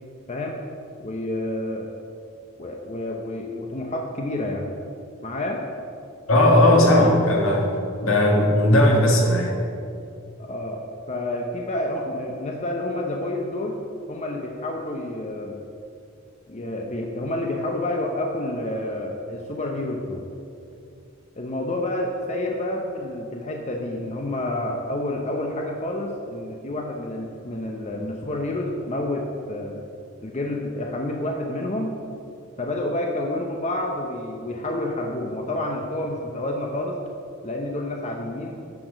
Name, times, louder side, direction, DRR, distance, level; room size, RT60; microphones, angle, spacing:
voice 1, 0.3-0.6 1.0-1.9 2.6-4.7 5.2-5.6 10.4-10.8 11.1-13.8 14.1-15.6 16.5-20.3 21.4-29.8 30.2-31.9 32.6-37.0 37.4-38.6, left 1 dB, 35° left, 1 dB, 0.7 m, -29 dB
voice 2, 6.3-7.7 8.0-9.6, left 1 dB, 80° left, -1 dB, 1.9 m, -17 dB
10.5 x 6.0 x 5.0 m, 2.5 s
head